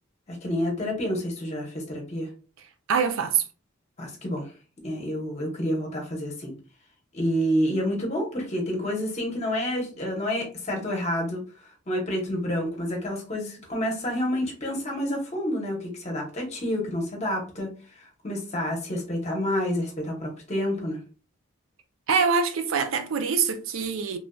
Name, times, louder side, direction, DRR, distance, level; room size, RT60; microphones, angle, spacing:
voice 1, 0.3-2.3 4.0-4.5 4.8-6.5 7.1-21.0, equal, 30° left, 0.8 m, -29 dB
voice 2, 2.9-3.4 22.1-24.2, right 5 dB, 75° right, 0.4 m, -24 dB
3.0 x 2.6 x 2.2 m
head